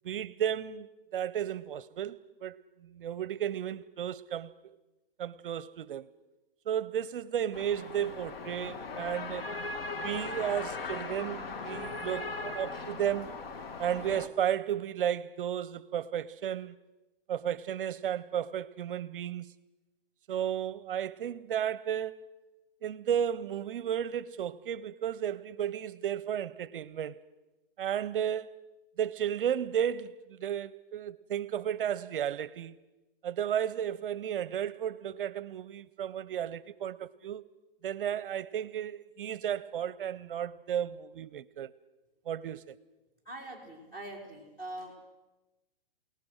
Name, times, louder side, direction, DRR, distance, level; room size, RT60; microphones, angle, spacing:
voice 1, 0.0-2.6 2.8-4.8 5.2-6.1 6.7-9.5 10.0-13.3 13.8-16.8 17.3-19.5 20.3-22.2 22.8-27.2 27.8-28.5 29.0-32.8 33.2-37.4 37.8-41.7 42.3-42.8, right 9 dB, 65° right, 0.6 m, -33 dB
sound 1, 7.5-14.3, left 3 dB, 85° left, 2.0 m, -39 dB
voice 2, 43.3-45.0, right 1 dB, 15° left, 4.2 m, -43 dB
28.5 x 18.5 x 6.3 m
hypercardioid pair, 165°, 29 cm